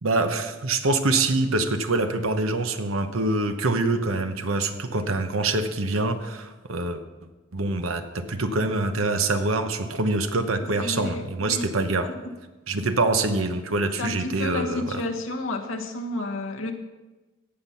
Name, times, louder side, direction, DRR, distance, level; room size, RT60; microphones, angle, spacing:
voice 1, 0.0-7.0 7.5-12.1 12.7-15.0, right 2 dB, 80° right, 8 dB, 1.0 m, -25 dB
voice 2, 10.8-12.1 14.0-16.7, left 2 dB, 75° left, 3 dB, 1.3 m, -31 dB
17.5 x 5.9 x 5.8 m, 1.2 s
head